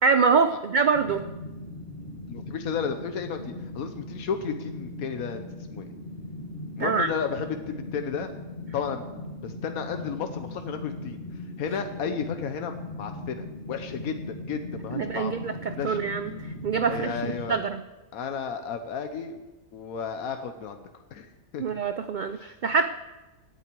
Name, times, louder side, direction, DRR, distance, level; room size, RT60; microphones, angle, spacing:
voice 1, 0.0-1.2 6.8-7.1 14.9-17.8 21.6-22.9, right 5 dB, 70° right, 10 dB, 0.4 m, -25 dB
sound 1, 0.9-17.5, left 2 dB, 40° left, 2.2 m, -39 dB
voice 2, 2.3-5.4 5.7-5.9 6.8-8.3 8.7-11.2 11.6-15.4 15.7-16.0 16.8-17.6 18.1-19.4 19.7-20.8 21.1-21.6 22.4-22.5, left 6 dB, 85° left, 7 dB, 1.3 m, -33 dB
17.0 x 11.0 x 4.6 m, 1.1 s
omnidirectional pair, 1.5 m